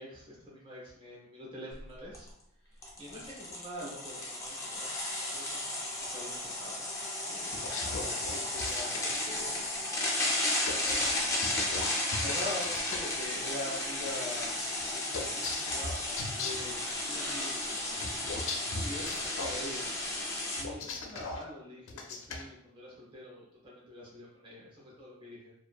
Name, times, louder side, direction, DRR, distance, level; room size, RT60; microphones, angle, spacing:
voice 1, 0.0-2.3 2.7-9.7 10.7-11.4 12.2-14.6 15.2-16.0 16.3-18.1 18.8-19.9 20.6-25.5, left 1 dB, 25° right, -5 dB, 0.7 m, -44 dB
sound 1, 1.7-1.8 2.1-2.3 2.8-20.6, left 1 dB, 15° left, 0.4 m, -34 dB
sound 2, 7.5-9.0 10.6-13.0 15.1-16.7 18.0-19.6 20.6-21.4 21.9-22.4, left 3 dB, 75° left, 0.4 m, -38 dB
2.6 x 2.2 x 2.2 m, 0.73 s
head